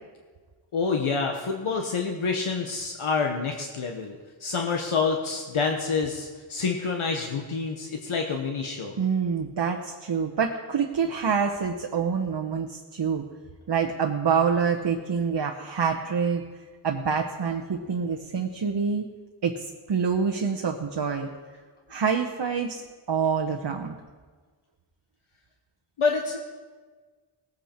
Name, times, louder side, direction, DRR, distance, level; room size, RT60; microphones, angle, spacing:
voice 1, 0.7-8.9 26.0-26.4, left 4 dB, 80° left, 2 dB, 1.1 m, -27 dB
voice 2, 9.0-13.3 13.7-16.4 16.8-19.0 19.4-21.3 21.9-22.8 23.1-24.0, right 6 dB, 55° right, 3 dB, 0.9 m, -26 dB
18.5 x 8.5 x 4.4 m, 1.4 s
wide cardioid pair, 60°, 49 cm